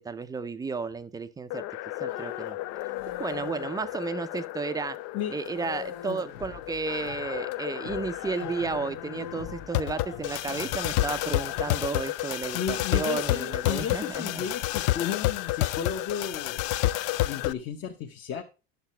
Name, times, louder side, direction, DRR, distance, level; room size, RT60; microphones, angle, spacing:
voice 1, 0.0-1.6 2.0-2.6 3.2-5.0 5.3-14.4, right 4 dB, 10° right, 0.5 m, -33 dB
sound 1, 1.5-17.5, left 16 dB, 55° left, 0.5 m, -31 dB
sound 2, 2.1-4.6 5.0-11.8, left 9 dB, 80° left, 1.3 m, -43 dB
voice 2, 12.5-16.6 17.2-18.4, left 8 dB, 40° left, 1.0 m, -33 dB
10.5 x 6.7 x 4.3 m
supercardioid pair, 145°, 31 cm